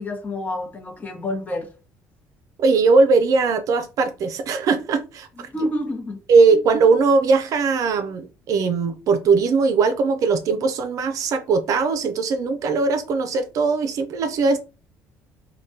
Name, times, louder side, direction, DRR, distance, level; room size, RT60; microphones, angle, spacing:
voice 1, 0.0-1.7 5.5-6.2, left 1 dB, 25° left, 0.9 m, -28 dB
voice 2, 2.6-5.5 6.3-14.6, right 4 dB, 55° right, 0.5 m, -19 dB
3.2 x 2.2 x 2.7 m
cardioid pair, 120°, 7 cm